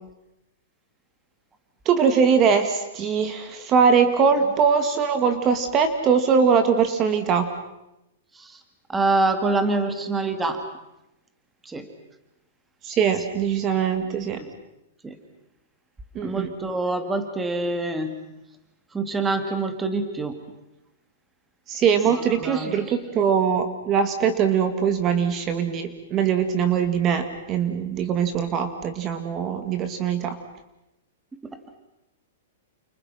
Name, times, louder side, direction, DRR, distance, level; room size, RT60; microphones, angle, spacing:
voice 1, 1.9-7.5 12.8-14.4 16.2-16.5 21.7-30.4, right 6 dB, 25° right, 8 dB, 2.0 m, -22 dB
voice 2, 8.9-10.6 11.6-11.9 14.3-14.5 15.0-15.2 16.2-18.2 18.9-20.4 22.0-23.0 31.4-31.6, right 3 dB, 10° right, 8 dB, 2.1 m, -26 dB
29.5 x 28.5 x 5.8 m, 0.89 s
hypercardioid pair, 160°, 0 cm